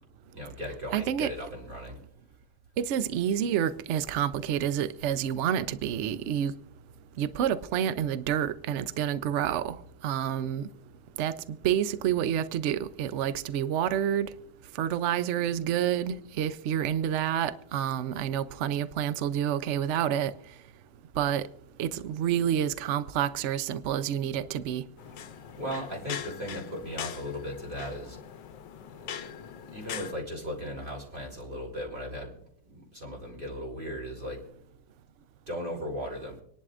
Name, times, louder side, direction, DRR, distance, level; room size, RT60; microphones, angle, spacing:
voice 1, 0.3-2.0 25.5-28.2 29.0-32.3 32.6-34.4 35.5-36.4, equal, 30° right, 3.6 m, -37 dB
voice 2, 0.9-1.3 2.8-6.5 7.2-9.8 10.0-10.7 11.2-11.3 11.6-14.3 14.8-20.3 21.2-21.5 21.8-24.8, right 10 dB, 75° right, 0.6 m, -28 dB
sound 1, 25.0-30.1, left 9 dB, 80° left, 1.3 m, -41 dB
26.0 x 11.0 x 2.5 m
omnidirectional pair, 1.9 m